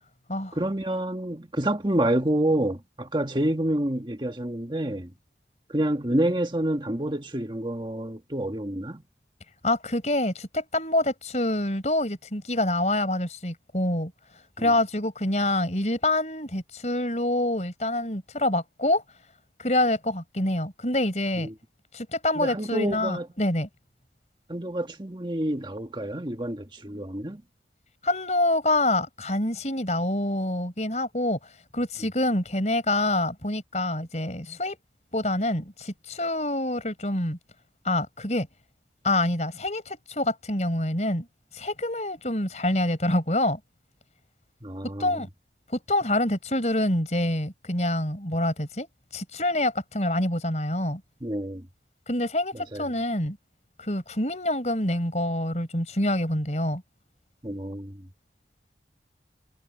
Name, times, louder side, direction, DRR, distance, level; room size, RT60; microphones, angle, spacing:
voice 1, 0.5-5.1 5.7-9.0 14.6-14.7 21.4-21.5 22.3-23.3 24.5-27.4 44.6-45.2 51.2-51.7 52.5-52.9 57.4-58.1, right 1 dB, 25° right, 1.6 m, -28 dB
voice 2, 9.6-14.1 14.6-19.0 19.6-21.5 21.9-23.7 28.0-31.4 31.7-34.8 35.1-37.4 37.8-38.5 39.0-41.3 41.5-43.6 45.0-45.3 45.9-48.9 49.1-51.0 52.1-53.4 53.8-56.8, left 1 dB, 40° left, 5.5 m, -26 dB
head